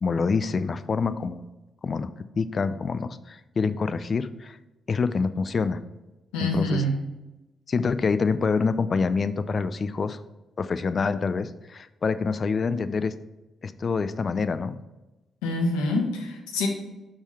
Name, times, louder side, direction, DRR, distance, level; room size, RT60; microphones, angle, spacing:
voice 1, 0.0-1.4 1.8-4.6 4.9-5.8 6.4-6.8 7.7-10.2 10.6-13.1 13.6-14.8, left 5 dB, 50° left, 13 dB, 0.4 m, -26 dB
voice 2, 6.3-7.0 15.4-16.7, left 1 dB, 85° left, 3 dB, 0.9 m, -26 dB
6.1 x 3.8 x 5.6 m, 1.0 s
hypercardioid pair, 45°, 0 cm